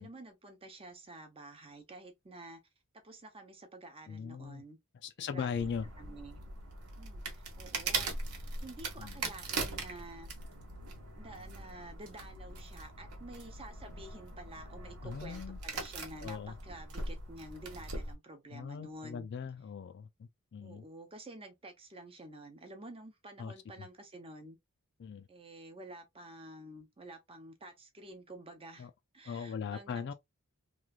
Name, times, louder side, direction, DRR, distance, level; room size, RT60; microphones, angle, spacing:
voice 1, 0.0-2.6 3.0-4.8 5.2-5.7 6.0-6.4 7.0-10.3 11.2-19.3 20.6-24.6 25.3-28.9 29.1-30.1, right 1 dB, 25° right, 0.7 m, -50 dB
voice 2, 4.1-4.6 5.0-5.9 9.0-9.2 15.0-15.6 16.2-16.6 18.5-20.8 23.4-23.9 25.0-25.3 28.8-28.9 29.2-30.1, left 6 dB, 50° left, 0.4 m, -40 dB
sound 1, 5.5-18.2, right 3 dB, 85° right, 1.0 m, -41 dB
3.1 x 2.4 x 2.3 m
head